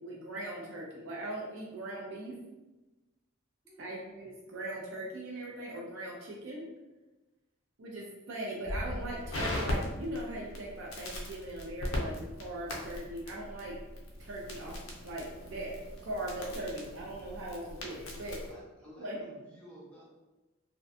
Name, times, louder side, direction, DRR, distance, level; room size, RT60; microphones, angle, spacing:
voice 1, 0.0-2.3 3.8-6.6 7.8-13.8 14.2-18.4 19.0-19.2, right 1 dB, 65° right, -3 dB, 0.4 m, -40 dB
Crackle, 8.7-18.5, left 1 dB, 80° left, 0.6 m, -39 dB
voice 2, 18.4-20.1, right 1 dB, 5° left, -7 dB, 0.7 m, -53 dB
2.4 x 2.1 x 2.6 m, 1.1 s
head